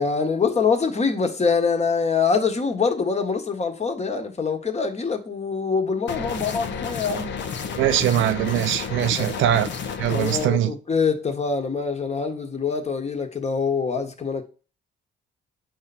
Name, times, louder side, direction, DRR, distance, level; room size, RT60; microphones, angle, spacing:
voice 1, 0.0-7.3 9.2-9.3 10.1-14.5, left 5 dB, 35° left, 1.5 m, -24 dB
sound 1, 6.1-10.5, left 6 dB, 65° left, 1.1 m, -31 dB
voice 2, 7.8-9.7 10.0-10.7, right 11 dB, 80° right, 0.6 m, -22 dB
8.7 x 5.6 x 4.3 m
cardioid pair, 90°, 20 cm